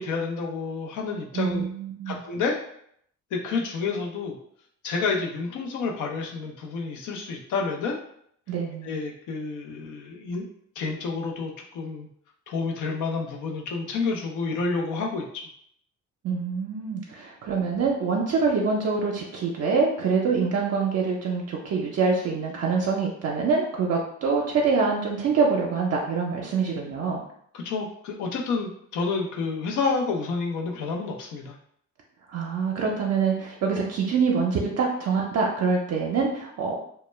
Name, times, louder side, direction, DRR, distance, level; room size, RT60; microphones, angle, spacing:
voice 1, 0.0-1.7 2.1-2.6 3.3-4.4 4.8-8.0 8.8-10.4 10.8-12.1 12.5-15.4 27.5-31.6, left 4 dB, 80° left, 1 dB, 0.6 m, -29 dB
voice 2, 1.3-2.2 8.5-8.9 16.2-27.2 32.3-36.8, right 5 dB, 55° right, -2 dB, 0.5 m, -25 dB
2.2 x 2.1 x 3.1 m, 0.68 s
cardioid pair, 90°, 30 cm